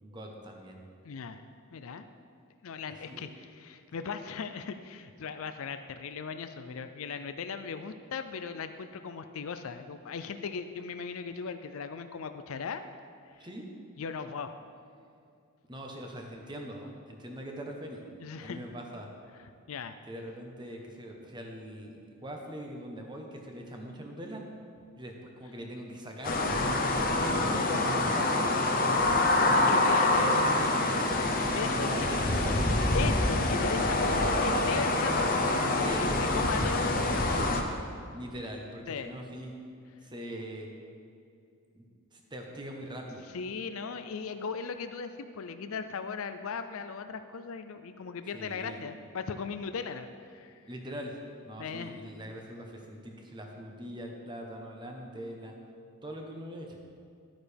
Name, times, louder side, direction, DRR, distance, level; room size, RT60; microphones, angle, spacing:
voice 1, 0.0-0.8 3.1-3.2 13.4-13.6 15.7-18.0 18.4-19.1 20.0-24.4 25.0-26.4 26.8-28.5 29.6-31.2 31.7-32.9 35.8-36.6 38.1-39.5 40.0-40.7 41.7-41.8 42.1-43.2 48.3-48.8 50.7-55.5 56.0-56.8, equal, 20° right, 1 dB, 1.0 m, -42 dB
voice 2, 1.0-1.4 1.7-2.0 2.6-12.8 14.0-14.5 18.2-18.6 19.4-19.9 29.7-30.5 31.3-32.0 32.9-35.3 35.8-37.5 38.9-39.1 43.3-50.6 51.6-52.0, left 5 dB, 65° left, 9 dB, 0.4 m, -38 dB
sound 1, 26.2-37.6, left 2 dB, 40° left, 0.8 m, -26 dB
12.5 x 8.9 x 3.5 m, 2.5 s
head